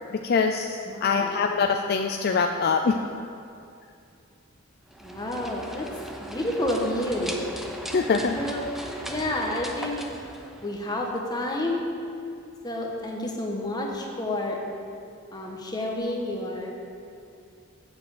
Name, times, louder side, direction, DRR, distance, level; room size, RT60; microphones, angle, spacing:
voice 1, 0.2-3.0 7.9-8.4, left 5 dB, 50° left, 4 dB, 0.4 m, -24 dB
voice 2, 0.9-1.3 5.0-5.9 6.3-7.4 8.3-8.6 9.0-10.1 10.6-11.8 12.6-14.6 15.3-16.7, left 1 dB, 20° left, -1 dB, 1.3 m, -29 dB
sound 1, 4.9-11.1, right 1 dB, ahead, 0.6 m, -38 dB
7.7 x 6.9 x 7.9 m, 2.5 s
head